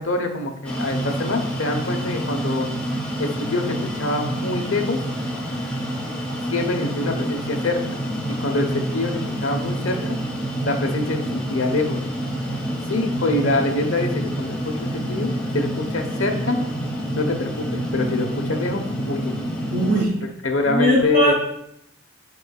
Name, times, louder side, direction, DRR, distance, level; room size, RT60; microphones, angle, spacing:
voice 1, 0.0-2.7 3.2-5.0 6.5-8.0 8.3-10.2 10.6-12.0 12.9-16.6 17.1-19.3 20.4-21.3, left 2 dB, 75° left, 4 dB, 1.1 m, -25 dB
sound 1, 0.6-20.1, equal, 5° left, 1.2 m, -28 dB
voice 2, 19.7-20.1 20.7-21.3, equal, 50° right, -3 dB, 2.8 m, -20 dB
11.5 x 4.9 x 2.4 m, 0.76 s
head